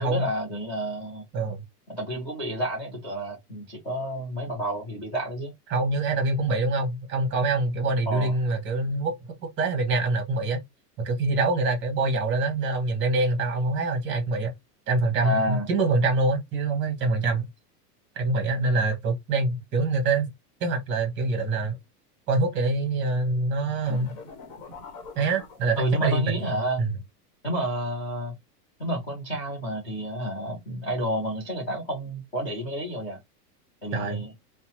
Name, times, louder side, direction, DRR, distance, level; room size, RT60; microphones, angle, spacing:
voice 1, 0.0-1.2 1.9-5.5 8.1-8.3 15.2-15.7 25.8-26.8 27.4-28.3 28.8-33.2 33.8-34.3, right 1 dB, 15° left, 0.3 m, -30 dB
voice 2, 5.7-9.1 9.4-10.6 11.0-14.5 14.9-17.4 18.2-20.3 20.6-21.7 22.3-24.1 25.2-26.5 26.8-26.9 33.9-34.2, right 3 dB, 25° right, 1.0 m, -25 dB
sound 1, 23.8-26.2, left 3 dB, 50° left, 1.0 m, -43 dB
2.7 x 2.0 x 2.9 m
supercardioid pair, 150°, 48 cm